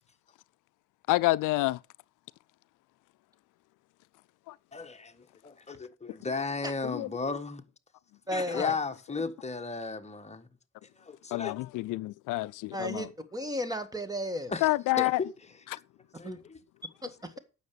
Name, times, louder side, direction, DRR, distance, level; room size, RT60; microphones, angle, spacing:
voice 1, 1.1-1.8 4.5-4.6 6.8-7.1 8.5-8.7 11.3-13.1 14.6-15.2, left 19 dB, 90° left, 0.5 m, -28 dB
voice 2, 4.7-7.6 8.3-10.5 11.1-11.5 14.5-14.7 15.0-15.3 16.2-16.6, left 4 dB, 20° left, 1.5 m, -35 dB
voice 3, 8.3-8.6 12.7-14.5 16.2-16.4 17.0-17.3, equal, 10° right, 1.9 m, -34 dB
9.4 x 6.7 x 6.8 m
cardioid pair, 90°, 30 cm